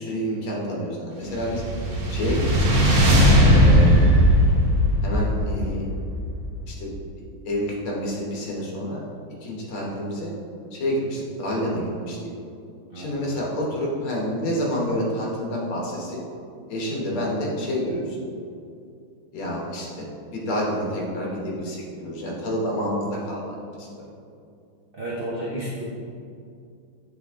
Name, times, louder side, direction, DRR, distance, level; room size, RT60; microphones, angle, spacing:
voice 1, 0.0-1.6 2.1-2.7 3.4-4.1 5.0-5.9 6.7-6.9 7.5-9.0 9.4-10.3 10.7-12.2 13.0-16.2 16.7-18.2 19.3-20.1 20.3-23.4 23.8-23.9, equal, 85° left, -3 dB, 2.1 m, -28 dB
sound 1, 1.3-6.7, equal, 45° right, 1.2 m, -18 dB
voice 2, 12.9-13.4 24.9-25.8, right 1 dB, 65° right, -6 dB, 0.5 m, -32 dB
8.1 x 3.5 x 3.6 m, 2.5 s
omnidirectional pair, 2.3 m